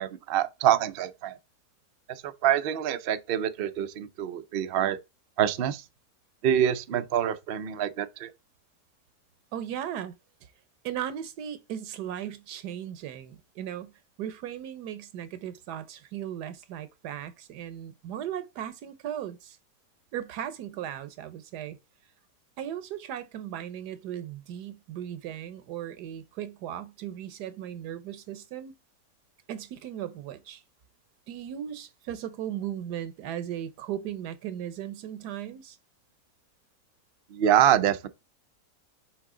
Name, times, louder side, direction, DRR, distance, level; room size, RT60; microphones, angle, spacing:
voice 1, 0.0-1.4 2.1-5.0 5.4-5.8 6.4-8.3 37.3-38.1, right 10 dB, 65° right, 0.5 m, -26 dB
voice 2, 9.5-10.1 10.8-13.9 14.2-19.6 20.1-21.8 22.6-28.7 29.5-30.6 31.3-35.8, right 10 dB, 80° right, 1.3 m, -37 dB
7.1 x 3.9 x 3.7 m
omnidirectional pair, 1.7 m